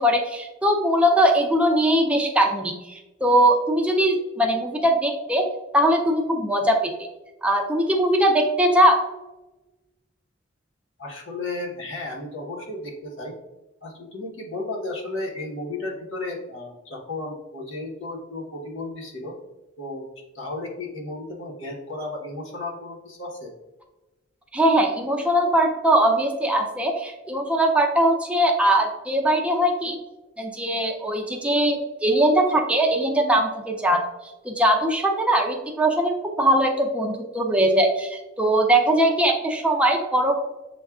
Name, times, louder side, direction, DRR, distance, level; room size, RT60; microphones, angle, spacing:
voice 1, 0.0-5.5 5.7-6.9 7.4-9.0 24.5-30.0 30.4-34.0 34.4-40.4, right 1 dB, 5° right, 2 dB, 0.4 m, -21 dB
voice 2, 11.0-13.3 13.8-19.3 19.8-20.0 20.3-23.5, left 2 dB, 75° left, -2 dB, 1.1 m, -34 dB
6.9 x 2.4 x 2.3 m, 1.1 s
head